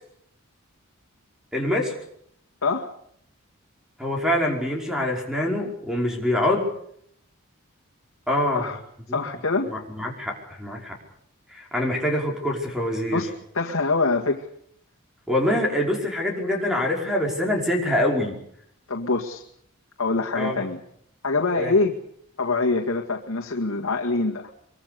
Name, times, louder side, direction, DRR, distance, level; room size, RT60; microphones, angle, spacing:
voice 1, 1.5-1.9 4.0-6.7 8.3-8.7 9.1-9.2 9.7-11.0 11.5-13.2 15.3-18.3 20.3-20.6 21.6-21.7, left 1 dB, 5° right, 1 dB, 5.2 m, -25 dB
voice 2, 9.1-9.7 13.1-13.3 13.5-14.5 18.9-19.4 20.0-20.8 21.2-22.0 22.4-24.5, left 3 dB, 80° left, 1 dB, 2.0 m, -24 dB
24.0 x 23.5 x 6.8 m, 0.69 s
head